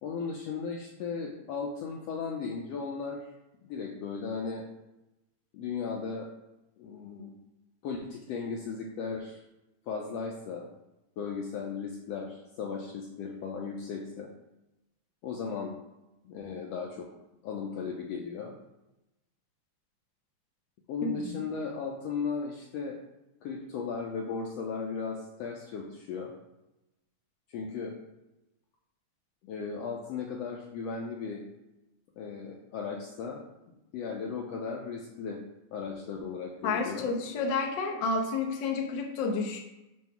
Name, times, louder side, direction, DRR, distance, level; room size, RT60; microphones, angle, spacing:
voice 1, 0.0-3.3 3.6-4.6 5.5-6.3 6.8-7.3 7.8-9.4 9.9-10.7 11.2-14.3 15.2-15.8 16.2-17.1 17.4-18.5 20.9-23.0 23.4-26.3 27.5-27.9 29.4-31.4 32.2-33.4 33.9-35.4 35.7-37.1, left 5 dB, 75° left, 0 dB, 1.6 m, -36 dB
voice 2, 21.0-21.4 36.6-39.6, left 4 dB, 90° left, 1 dB, 1.0 m, -30 dB
7.4 x 3.1 x 5.9 m, 0.95 s
omnidirectional pair, 3.5 m